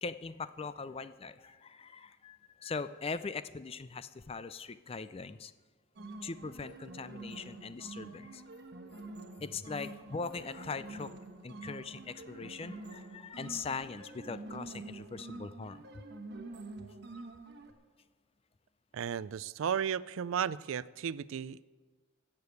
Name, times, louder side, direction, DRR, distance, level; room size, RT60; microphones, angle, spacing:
voice 1, 0.0-5.5 6.2-8.4 9.4-11.2 11.4-16.0 16.8-16.9, left 4 dB, 25° left, 14 dB, 0.4 m, -41 dB
sound 1, 5.9-17.7, right 2 dB, 50° right, 1.2 m, -47 dB
voice 2, 18.9-21.7, right 8 dB, 75° right, 19 dB, 0.4 m, -34 dB
15.0 x 6.8 x 8.2 m, 1.4 s
head